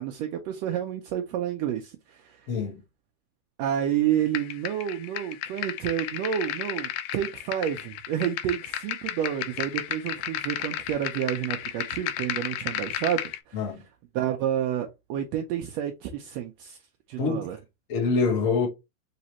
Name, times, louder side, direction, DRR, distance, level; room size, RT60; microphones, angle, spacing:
voice 1, 0.0-2.5 3.6-13.2 13.5-13.6 14.1-16.8 17.1-17.6, right 10 dB, 80° right, 1.5 m, -29 dB
voice 2, 2.5-2.8 13.5-13.8 17.2-17.5 17.9-18.7, left 4 dB, 65° left, 0.8 m, -25 dB
sound 1, 4.3-13.4, left 12 dB, 85° left, 2.0 m, -33 dB
4.9 x 3.1 x 2.8 m
omnidirectional pair, 3.3 m